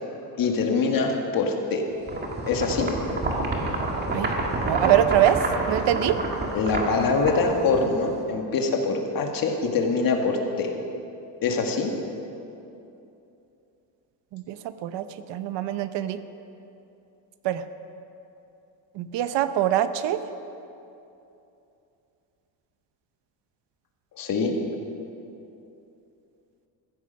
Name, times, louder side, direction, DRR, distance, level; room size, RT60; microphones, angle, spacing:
voice 1, 0.4-1.8 2.5-2.9 6.5-10.7 11.4-11.9 24.2-24.6, left 4 dB, 50° left, 3 dB, 1.9 m, -24 dB
sound 1, 2.1-8.2, right 2 dB, 20° right, 2.0 m, -28 dB
voice 2, 4.7-5.4 5.7-6.2 14.3-14.6 14.8-15.0 15.3-16.2 17.4-17.6 19.0-20.2, right 12 dB, 70° right, 11 dB, 0.8 m, -23 dB
15.0 x 14.5 x 5.7 m, 2.8 s
cardioid pair, 155°, 44 cm